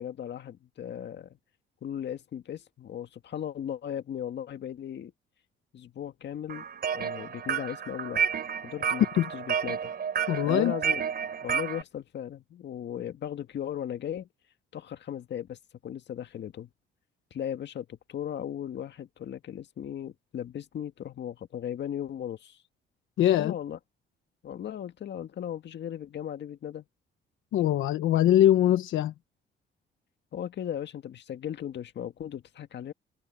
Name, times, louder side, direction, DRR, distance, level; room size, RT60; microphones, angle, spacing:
voice 1, 0.0-1.4 1.8-5.1 5.7-6.7 6.9-8.3 8.6-9.0 9.3-9.9 10.5-11.0 11.4-14.3 14.7-16.7 17.3-22.6 23.4-23.8 24.4-26.9 30.3-32.9, left 10 dB, 60° left, 1.9 m, -37 dB
sound 1, 6.5-11.8, right 7 dB, 55° right, 3.4 m, -31 dB
voice 2, 10.3-10.7 23.2-23.5 27.5-29.1, left 12 dB, 80° left, 1.1 m, -22 dB
cardioid pair, 90°, 20 cm